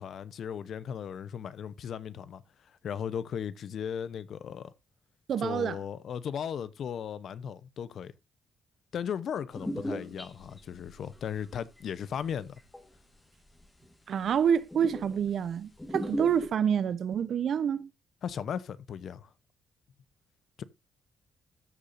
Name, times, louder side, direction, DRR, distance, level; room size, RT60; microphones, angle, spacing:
voice 1, 0.0-2.4 2.7-4.7 5.4-8.1 8.9-12.5 18.2-19.3 20.6-20.7, left 8 dB, 60° left, 0.8 m, -36 dB
voice 2, 5.3-5.8 14.1-17.9, right 8 dB, 60° right, 0.8 m, -27 dB
sound 1, 9.5-11.3 11.5-12.8 13.5-13.6 13.9-14.0 14.2-14.4 14.7-15.4 15.8-16.5, equal, 10° left, 1.6 m, -37 dB
13.5 x 6.7 x 2.6 m
cardioid pair, 90°, 0 cm